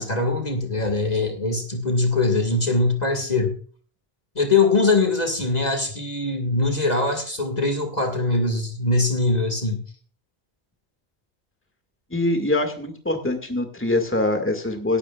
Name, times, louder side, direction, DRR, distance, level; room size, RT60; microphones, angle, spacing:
voice 1, 0.0-3.6 4.4-9.8, left 3 dB, 40° left, 4 dB, 2.0 m, -22 dB
voice 2, 12.1-15.0, left 2 dB, 10° left, 6 dB, 1.9 m, -23 dB
17.5 x 11.5 x 2.4 m, 0.41 s
omnidirectional pair, 1.1 m